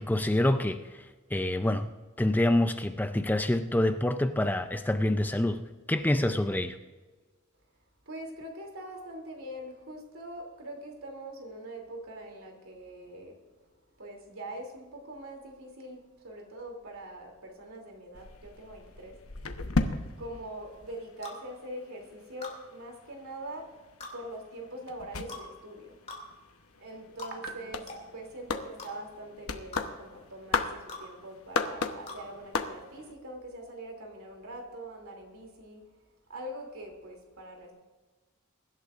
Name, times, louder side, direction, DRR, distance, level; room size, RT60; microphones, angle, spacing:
voice 1, 0.0-1.9 2.2-5.6 5.9-6.8, left 1 dB, 10° left, 8 dB, 0.4 m, -27 dB
voice 2, 8.1-13.4 14.0-19.2 19.8-23.7 24.1-26.0 26.8-35.8 36.3-37.7, right 1 dB, 80° right, 2 dB, 3.0 m, -43 dB
sound 1, 18.1-21.6 21.9-33.1, left 3 dB, 85° left, 1.0 m, -36 dB
sound 2, 21.2-21.4 22.4-22.6 24.0-24.2 25.3-25.5 26.1-26.2 27.2-27.4 27.9-28.0 28.8-28.9 29.7-29.9 30.9-31.1 32.1-32.2, left 3 dB, 30° left, 2.5 m, -42 dB
23.0 x 11.5 x 2.5 m, 1.3 s
head